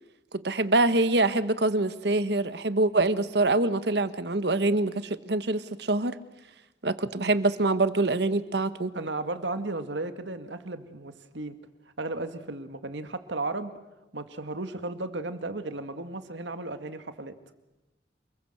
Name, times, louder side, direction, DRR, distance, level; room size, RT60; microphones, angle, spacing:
voice 1, 0.3-6.1 6.8-8.9, right 2 dB, 65° right, 13 dB, 1.3 m, -25 dB
voice 2, 8.9-11.5 12.0-13.7 14.1-17.4, right 2 dB, 85° right, 9 dB, 2.0 m, -34 dB
28.0 x 21.5 x 7.9 m, 1.0 s
head